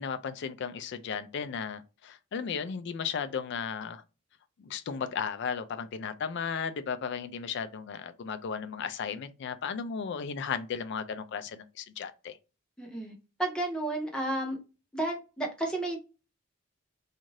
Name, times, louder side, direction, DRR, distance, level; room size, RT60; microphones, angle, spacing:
voice 1, 0.0-4.0 4.6-12.4, left 6 dB, 55° left, 0.3 m, -35 dB
voice 2, 12.8-13.1 13.4-14.6 14.9-16.0, right 2 dB, 5° left, 0.8 m, -32 dB
2.6 x 2.4 x 3.1 m
head